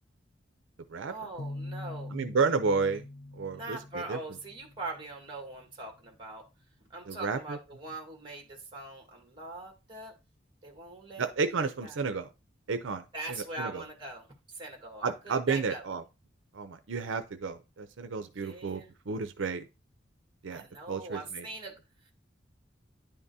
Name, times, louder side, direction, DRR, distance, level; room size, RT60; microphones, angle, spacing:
voice 1, 1.1-2.1 3.5-6.5 6.9-10.1 10.6-11.3 11.8-12.0 13.1-14.3 14.5-15.8 18.3-18.9 20.5-21.8 22.0-22.1, right 2 dB, 25° right, 2 dB, 1.6 m, -42 dB
sound 1, 1.4-5.1, left 1 dB, 80° left, 0.5 m, -43 dB
voice 2, 2.1-3.0 3.3-4.2 7.1-7.6 11.2-12.3 12.7-13.8 15.0-16.0 16.5-18.8 19.1-19.7 20.4-21.5, right 4 dB, 80° right, 9 dB, 0.5 m, -31 dB
10.5 x 3.7 x 2.7 m, 0.27 s
head